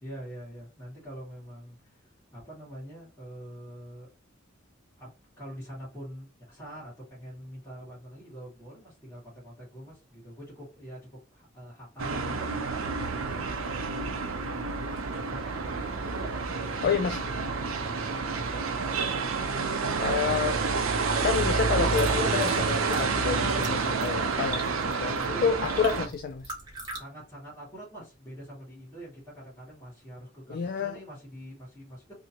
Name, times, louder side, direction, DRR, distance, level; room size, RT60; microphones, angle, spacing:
voice 1, 0.0-4.1 5.0-5.1 5.4-14.6 15.3-17.0 17.6-19.1 25.3-26.1 26.9-32.1, equal, 10° left, 2.1 m, -45 dB
sound 1, 12.0-26.1, right 4 dB, 75° right, 0.6 m, -29 dB
voice 2, 16.8-17.2 20.0-20.6 21.2-26.4 30.5-31.0, left 6 dB, 50° left, 0.3 m, -29 dB
sound 2, 21.7-27.0, right 2 dB, 20° right, 1.3 m, -42 dB
3.5 x 2.8 x 2.8 m
head